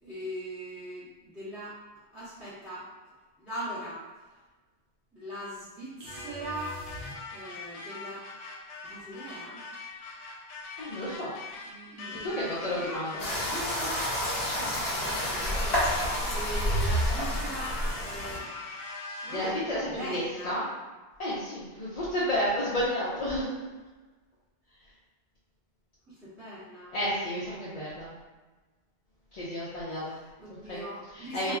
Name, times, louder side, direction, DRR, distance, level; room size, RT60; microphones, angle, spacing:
voice 1, 0.0-1.8 2.1-2.9 3.4-4.0 5.1-6.8 7.3-8.3 8.8-9.6 11.6-14.1 14.5-18.5 19.2-20.6 26.1-26.9 29.9-31.5, right 1 dB, ahead, -12 dB, 0.8 m, -41 dB
sound 1, 6.0-7.7, equal, 75° right, 0.8 m, -44 dB
sound 2, 6.1-19.7, left 3 dB, 85° left, 0.9 m, -41 dB
voice 2, 10.8-11.3 12.2-13.2 19.3-20.6 21.2-23.5 26.9-28.1 29.3-30.1 30.7-30.8 31.2-31.5, equal, 45° left, -9 dB, 0.5 m, -31 dB
sound 3, 13.2-18.4, equal, 60° left, 1.2 m, -29 dB
2.4 x 2.1 x 3.5 m, 1.2 s
omnidirectional pair, 1.2 m